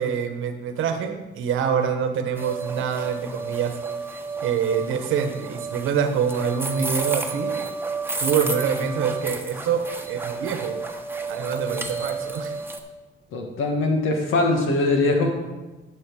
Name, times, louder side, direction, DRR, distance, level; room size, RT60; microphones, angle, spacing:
voice 1, 0.0-3.8 4.4-7.6 8.2-10.8 11.3-12.5, right 7 dB, 85° right, 7 dB, 1.1 m, -25 dB
sound 1, 2.4-12.8, right 4 dB, 10° right, 1.1 m, -31 dB
voice 2, 13.3-15.3, left 2 dB, 90° left, 2 dB, 1.8 m, -21 dB
11.0 x 6.4 x 4.8 m, 1.2 s
cardioid pair, 90°, 20 cm